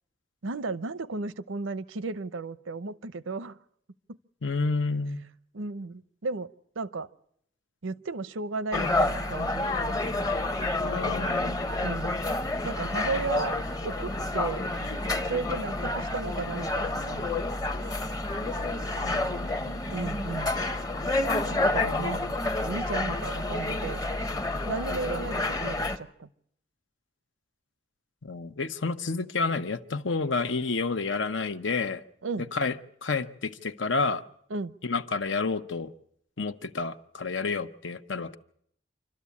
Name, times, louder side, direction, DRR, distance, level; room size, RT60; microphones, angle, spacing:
voice 1, 0.4-3.6 4.1-4.2 5.5-6.5 6.8-7.1 7.8-9.7 11.8-12.2 12.6-14.6 15.3-17.4 19.9-20.6 21.6-24.0 24.7-26.3 32.2-32.5 34.5-34.8, right 3 dB, 80° right, 16 dB, 0.7 m, -34 dB
voice 2, 4.4-5.2 10.8-11.6 18.9-19.8 21.4-21.6 21.8-22.1 28.2-32.0 32.5-34.2 34.8-35.9 36.4-38.4, left 4 dB, 70° left, 11 dB, 0.9 m, -30 dB
sound 1, 8.7-26.0, left 2 dB, 20° left, 0.8 m, -29 dB
27.0 x 12.5 x 8.4 m, 0.71 s
head